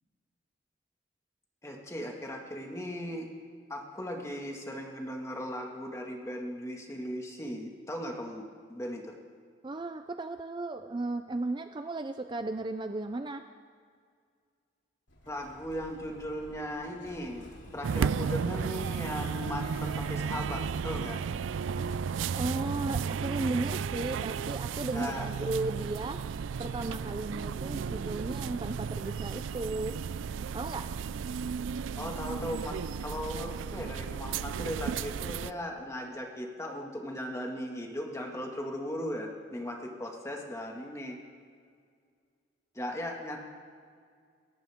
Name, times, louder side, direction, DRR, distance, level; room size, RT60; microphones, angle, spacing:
voice 1, 1.6-3.3 3.7-9.2 15.3-21.2 24.9-25.3 32.0-41.2 42.7-43.4, equal, 15° left, 0 dB, 1.9 m, -38 dB
voice 2, 9.6-13.4 21.7-22.0 22.3-26.3 26.6-30.0 30.5-30.9, right 2 dB, 25° right, 8 dB, 0.4 m, -35 dB
Explosion, 15.1-23.7, left 1 dB, 85° left, 2.8 m, -52 dB
sound 1, 17.8-35.5, right 6 dB, 90° right, 0.4 m, -34 dB
28.5 x 14.0 x 3.6 m, 2.1 s
head